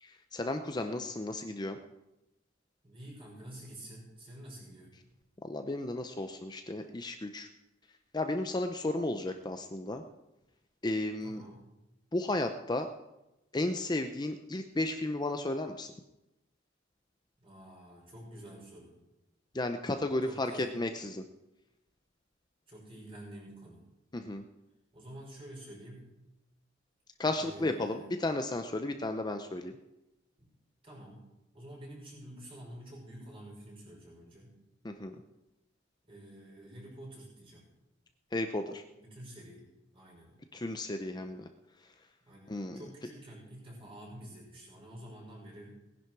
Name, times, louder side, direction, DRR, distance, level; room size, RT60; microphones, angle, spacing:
voice 1, 0.0-1.8 5.4-7.5 8.1-10.0 10.8-11.4 12.1-12.9 13.5-15.9 19.5-21.2 24.1-24.4 27.2-29.7 34.8-35.2 38.3-38.8 40.5-41.5 41.8-41.9 42.5-42.8, left 2 dB, 20° left, 7 dB, 0.6 m, -34 dB
voice 2, 2.8-4.9 11.2-11.7 17.4-18.9 20.2-20.6 22.7-23.8 24.9-26.1 27.3-28.1 30.4-30.5 30.8-31.2 31.5-34.6 36.1-37.7 39.0-39.6 39.9-40.3 42.2-45.8, right 1 dB, 30° right, -2 dB, 5.9 m, -49 dB
18.5 x 10.5 x 4.7 m, 0.95 s
head